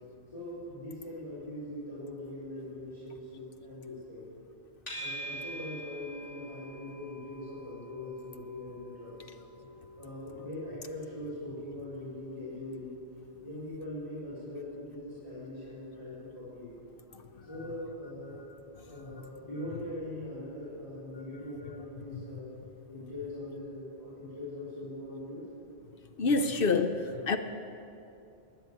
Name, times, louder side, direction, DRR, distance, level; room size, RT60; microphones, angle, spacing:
voice 1, 0.3-4.2 5.0-9.3 10.0-12.9 13.4-16.7 17.4-18.4 18.9-22.5 22.9-25.4, left 1 dB, 25° left, -10 dB, 4.3 m, -41 dB
sound 1, 4.9-22.1, right 1 dB, 85° left, 3.5 m, -50 dB
voice 2, 26.2-27.4, left 4 dB, 55° left, 8 dB, 0.9 m, -27 dB
13.0 x 9.7 x 9.6 m, 2.7 s
omnidirectional pair, 1.2 m